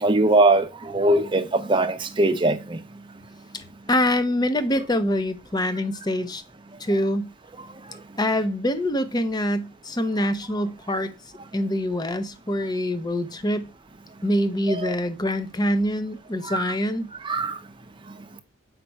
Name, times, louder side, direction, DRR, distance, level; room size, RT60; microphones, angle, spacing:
voice 1, 0.0-2.8 14.7-14.9 16.4-16.7 17.2-17.6, right 2 dB, 25° right, 0.7 m, -21 dB
voice 2, 3.5-6.4 6.8-7.3 8.2-11.1 11.5-13.7 14.2-17.1, left 1 dB, 20° left, 0.7 m, -25 dB
7.4 x 5.2 x 4.5 m
head